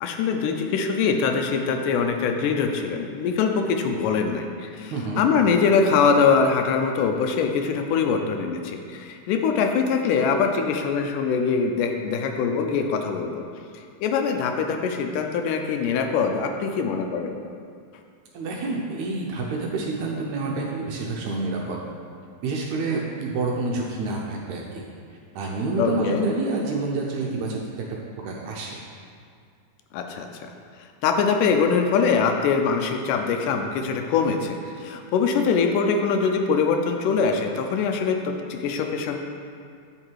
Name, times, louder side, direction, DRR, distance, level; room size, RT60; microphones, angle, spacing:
voice 1, 0.0-13.4 13.7-17.4 25.8-26.3 29.9-30.5 31.0-39.2, left 5 dB, 80° left, 4 dB, 2.1 m, -23 dB
voice 2, 4.9-5.2 18.3-21.8 22.4-24.8 25.4-27.9 28.3-28.8, right 3 dB, 75° right, -1 dB, 1.8 m, -28 dB
8.8 x 6.3 x 4.6 m, 2.2 s
omnidirectional pair, 3.9 m